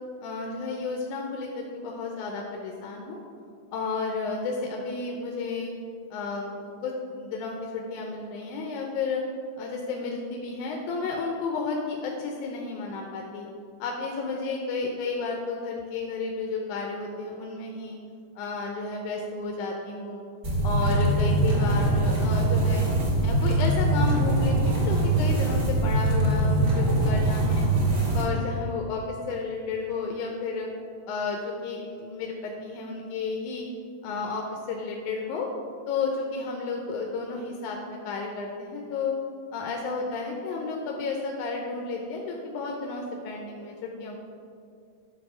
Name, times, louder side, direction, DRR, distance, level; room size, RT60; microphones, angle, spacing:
voice 1, 0.2-3.2 3.7-5.7 6.1-9.2 9.6-13.5 13.8-18.0 18.4-20.2 20.6-22.8 23.2-27.7 28.1-30.7 31.1-33.7 34.0-35.5 35.9-39.1 39.5-44.2, left 4 dB, 85° left, 0 dB, 2.2 m, -32 dB
sound 1, 20.4-28.2, right 2 dB, 35° right, 2.1 m, -23 dB
11.0 x 4.2 x 6.1 m, 2.3 s
omnidirectional pair, 3.4 m